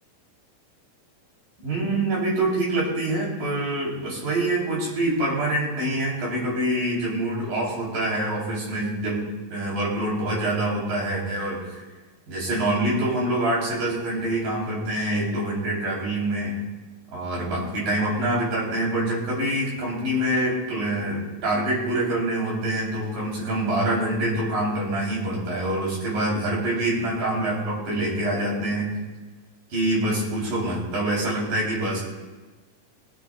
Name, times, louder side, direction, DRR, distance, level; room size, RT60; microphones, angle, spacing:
voice 1, 1.6-9.2 9.5-11.8 12.3-16.5 17.1-28.9 29.7-32.0, right 1 dB, 80° right, -5 dB, 6.2 m, -25 dB
23.5 x 9.9 x 2.6 m, 1.2 s
omnidirectional pair, 3.9 m